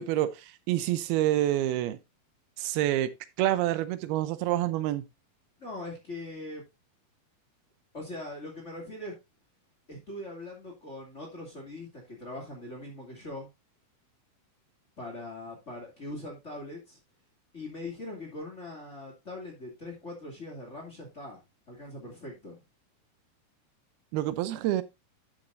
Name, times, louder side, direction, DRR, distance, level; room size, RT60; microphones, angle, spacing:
voice 1, 0.0-2.0 2.6-3.1 3.4-5.0 24.1-24.8, right 13 dB, 90° right, 2.7 m, -27 dB
voice 2, 5.6-6.6 7.9-9.2 9.9-13.5 15.0-17.0 17.5-22.6, left 2 dB, 20° left, 2.3 m, -41 dB
11.5 x 7.5 x 2.6 m
omnidirectional pair, 4.4 m